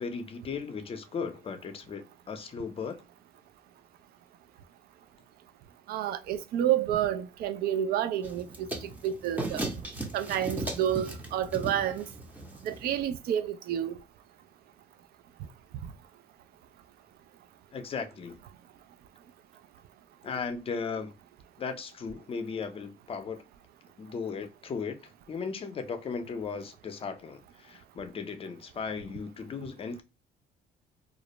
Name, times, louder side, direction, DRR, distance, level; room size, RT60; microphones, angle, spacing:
voice 1, 0.0-3.0 17.7-18.4 20.2-21.1 21.6-23.4 24.0-25.0 25.3-30.0, left 5 dB, 35° left, 0.5 m, -36 dB
voice 2, 5.9-9.6 10.1-12.0 12.6-14.0, right 10 dB, 65° right, 0.4 m, -29 dB
sound 1, 8.2-13.0, right 2 dB, 10° right, 0.6 m, -37 dB
2.4 x 2.0 x 2.9 m
cardioid pair, 110°, 17 cm